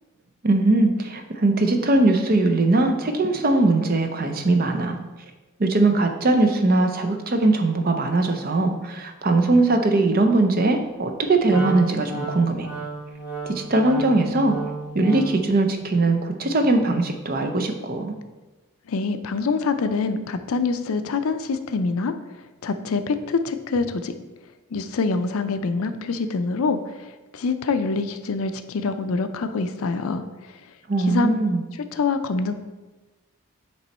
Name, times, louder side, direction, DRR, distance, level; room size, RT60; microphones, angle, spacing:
voice 1, 0.4-5.0 5.6-12.7 13.4-14.6 14.9-18.1 30.9-31.6, right 2 dB, 40° right, 5 dB, 0.5 m, -20 dB
Wind instrument woodwind instrument, 11.5-15.5, right 3 dB, 10° right, 1.1 m, -33 dB
voice 2, 18.9-24.1 24.7-30.2 31.0-31.3 31.9-32.5, left 4 dB, 70° left, 9 dB, 0.4 m, -25 dB
8.0 x 3.0 x 4.2 m, 1.2 s
head